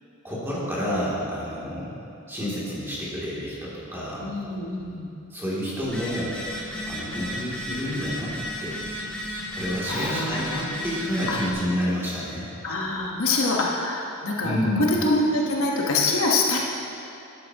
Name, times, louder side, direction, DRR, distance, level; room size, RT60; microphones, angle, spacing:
voice 1, 0.2-1.9 2.3-4.3 5.3-6.4 6.9-8.3 8.6-8.8 9.5-12.5 14.4-14.9, equal, 10° right, -8 dB, 2.6 m, -29 dB
voice 2, 4.2-5.1 9.9-10.7 11.3-11.5 12.6-14.5 15.0-16.6, left 2 dB, 70° left, -2 dB, 1.3 m, -25 dB
Telephone, 5.8-11.5, equal, 5° left, 1.5 m, -33 dB
12.0 x 11.0 x 2.9 m, 2.9 s
head